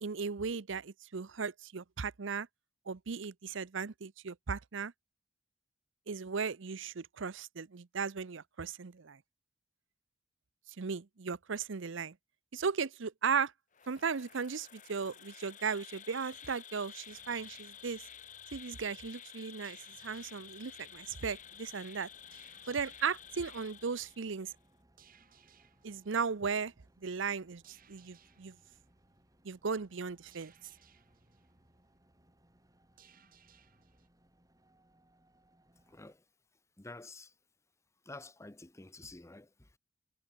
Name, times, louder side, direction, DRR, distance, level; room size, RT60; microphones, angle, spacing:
voice 1, 0.0-2.5 2.9-4.9 6.1-9.2 10.8-12.2 12.5-13.5 13.9-18.0 18.5-22.1 22.7-24.5 25.8-28.6 29.4-30.5, right 5 dB, 65° right, 0.7 m, -36 dB
Insect, 13.7-24.5, left 9 dB, 40° left, 1.5 m, -52 dB
sound 1, 17.1-34.1, right 6 dB, 45° right, 4.4 m, -67 dB
sound 2, 20.9-36.2, right 1 dB, 20° right, 4.8 m, -69 dB
voice 2, 35.9-36.2 36.8-37.3 38.1-39.8, left 2 dB, 15° left, 0.8 m, -50 dB
head